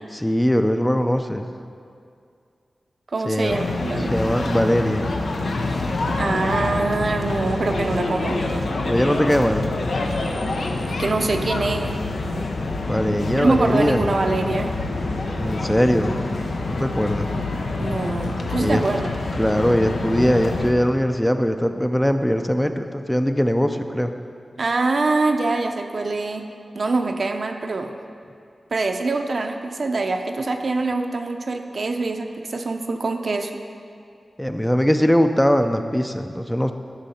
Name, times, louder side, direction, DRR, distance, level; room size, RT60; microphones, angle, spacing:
voice 1, 0.1-1.5 3.2-3.6 4.0-5.1 8.9-9.8 12.9-14.1 15.4-16.3 16.7-17.3 18.6-18.8 19.4-24.1 34.4-36.7, equal, 10° left, 6 dB, 0.4 m, -21 dB
voice 2, 3.1-4.1 6.2-8.6 11.0-12.0 13.3-14.7 17.7-19.2 24.6-26.5 26.7-27.9 28.7-33.5, right 3 dB, 60° right, 5 dB, 0.6 m, -24 dB
sound 1, 3.5-20.7, left 2 dB, 85° left, 0.7 m, -26 dB
11.0 x 6.2 x 4.2 m, 2.4 s
wide cardioid pair, 75°, 0 cm